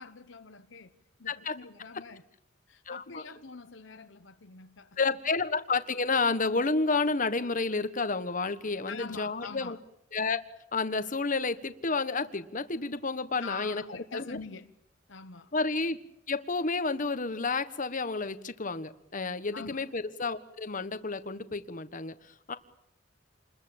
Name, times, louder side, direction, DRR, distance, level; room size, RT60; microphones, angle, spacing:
voice 1, 0.0-2.2 2.7-5.0 8.9-9.8 13.4-14.7 15.1-15.5 19.5-19.9, left 4 dB, 70° left, 1.1 m, -45 dB
voice 2, 2.9-3.2 5.0-9.8 10.1-10.4 10.7-13.8 14.1-14.4 15.5-16.0 16.3-22.1 22.5-22.6, left 3 dB, 45° left, 1.4 m, -30 dB
28.5 x 21.5 x 8.8 m
head